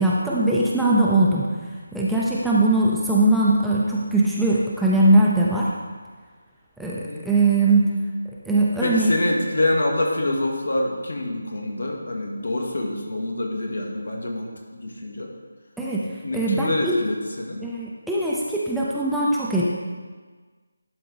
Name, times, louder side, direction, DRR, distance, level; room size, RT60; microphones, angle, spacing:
voice 1, 0.0-1.5 1.9-5.7 6.8-7.9 8.5-9.1 15.8-16.1 16.3-17.0 17.6-19.7, right 2 dB, ahead, -7 dB, 0.6 m, -20 dB
voice 2, 6.9-7.2 8.8-15.3 16.2-17.6, left 1 dB, 65° left, 0 dB, 1.6 m, -26 dB
11.0 x 4.6 x 3.9 m, 1.4 s
figure-of-eight pair, 155°, 0 cm